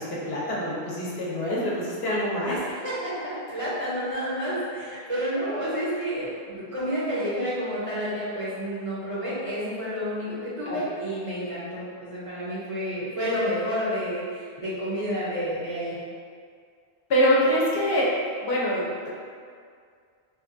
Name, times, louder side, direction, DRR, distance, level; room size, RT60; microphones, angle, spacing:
voice 1, 0.0-2.6 10.6-10.8 17.1-18.1 18.4-19.1, equal, 75° left, -6 dB, 0.9 m, -25 dB
voice 2, 2.8-15.9, equal, 40° right, -10 dB, 0.5 m, -30 dB
2.8 x 2.2 x 2.5 m, 2.2 s
omnidirectional pair, 1.0 m